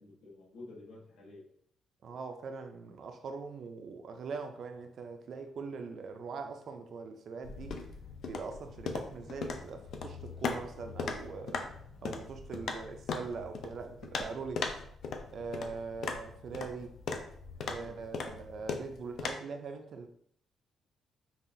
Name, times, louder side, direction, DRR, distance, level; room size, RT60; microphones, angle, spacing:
voice 1, 0.0-1.5 17.8-18.7, left 2 dB, 80° left, 1.2 m, -52 dB
voice 2, 2.0-7.8 8.3-11.7 12.0-14.7 15.3-16.9 17.6-20.1, right 4 dB, 45° right, 0.4 m, -42 dB
sound 1, 7.4-19.3, left 4 dB, 55° left, 0.4 m, -39 dB
5.5 x 2.4 x 2.6 m
cardioid pair, 175°, 0 cm